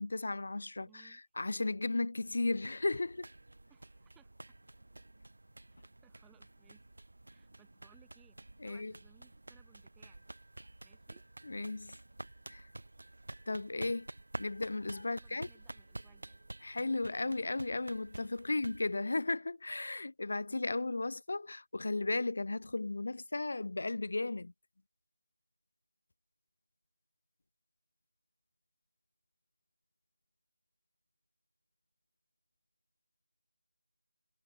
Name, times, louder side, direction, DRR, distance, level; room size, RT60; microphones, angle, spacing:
voice 1, 0.0-3.3 8.6-8.9 11.4-11.9 12.5-12.6 13.5-14.1 14.4-15.5 16.6-24.5, left 2 dB, 45° left, 0.8 m, -35 dB
voice 2, 0.8-1.2 3.7-4.6 5.7-6.8 7.3-10.3 10.8-11.2 15.0-16.4 18.5-18.7, right 15 dB, 5° right, 6.2 m, -67 dB
sound 1, 2.2-18.9, right 2 dB, 60° right, 5.7 m, -50 dB
figure-of-eight pair, 175°, 0 cm